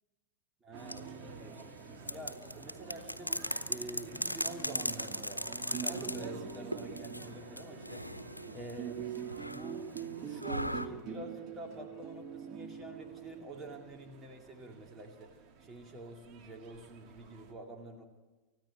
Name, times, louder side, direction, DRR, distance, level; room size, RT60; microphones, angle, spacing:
voice 1, 0.6-1.7 2.1-8.2 8.5-9.1 9.5-9.9 10.2-18.0, right 1 dB, 20° right, 2 dB, 2.4 m, -47 dB
sound 1, 0.7-17.5, right 7 dB, 40° right, 3.1 m, -45 dB
sound 2, 0.8-10.9, equal, 90° left, 1.0 m, -40 dB
29.5 x 14.5 x 9.1 m, 1.2 s
figure-of-eight pair, 90°, 0 cm